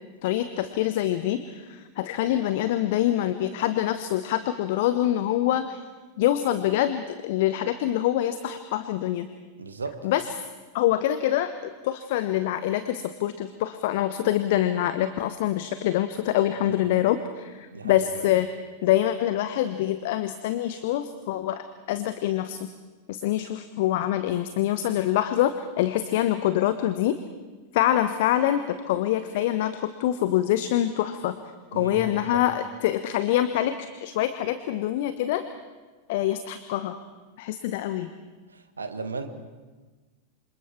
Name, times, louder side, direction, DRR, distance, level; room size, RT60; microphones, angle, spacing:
voice 1, 0.2-5.8 6.2-9.3 10.0-10.2 10.7-18.5 18.8-22.7 23.1-27.2 27.7-31.4 31.7-35.4 36.1-37.0 37.4-38.1, left 12 dB, 50° left, 11 dB, 1.0 m, -25 dB
voice 2, 9.6-10.1 16.7-16.8 17.7-18.3 31.7-32.4 38.5-39.3, right 3 dB, 75° right, 9 dB, 1.8 m, -35 dB
27.0 x 27.0 x 4.5 m, 1.3 s
figure-of-eight pair, 90°, 0 cm